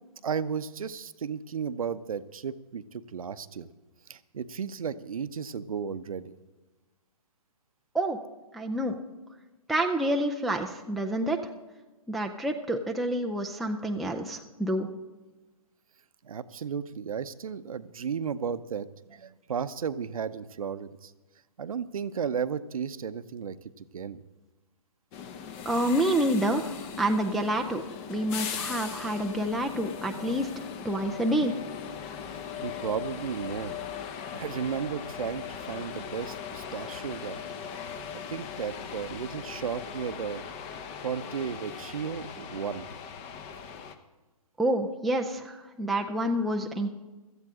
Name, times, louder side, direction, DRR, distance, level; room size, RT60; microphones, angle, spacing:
voice 1, 0.2-3.7 4.1-6.3 16.2-21.1 21.6-24.2 32.6-33.8 34.3-37.4 38.1-40.4 41.0-42.9, right 7 dB, 70° right, 13 dB, 0.8 m, -34 dB
voice 2, 8.5-8.9 9.7-11.4 12.1-14.9 25.7-26.6 27.0-27.8 28.1-30.5 30.8-31.5 44.6-46.9, right 1 dB, ahead, 1 dB, 0.4 m, -28 dB
sound 1, 25.1-43.9, left 7 dB, 25° left, 0.8 m, -39 dB
16.5 x 13.5 x 3.7 m, 1.2 s
hypercardioid pair, 140°, 19 cm